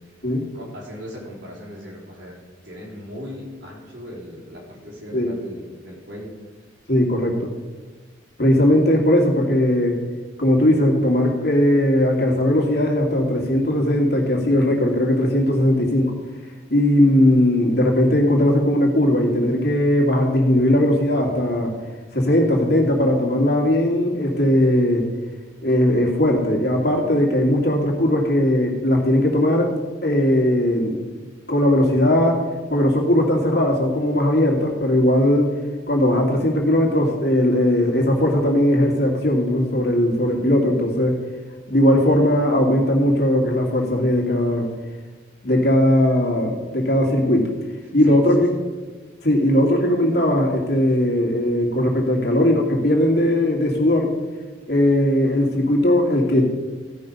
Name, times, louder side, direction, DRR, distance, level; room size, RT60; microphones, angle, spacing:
voice 1, 0.5-2.4 2.6-6.4 47.8-48.3, equal, 70° right, -5 dB, 4.2 m, -38 dB
voice 2, 6.9-7.5 8.4-10.0 10.4-16.1 16.7-21.7 22.1-25.1 25.6-29.7 30.0-30.9 31.5-32.4 32.7-35.5 35.9-41.2 41.7-44.7 45.4-47.5 47.9-48.5 49.2-54.1 54.7-56.5, left 1 dB, 55° left, 0 dB, 2.2 m, -18 dB
15.0 x 5.7 x 5.3 m, 1.3 s
head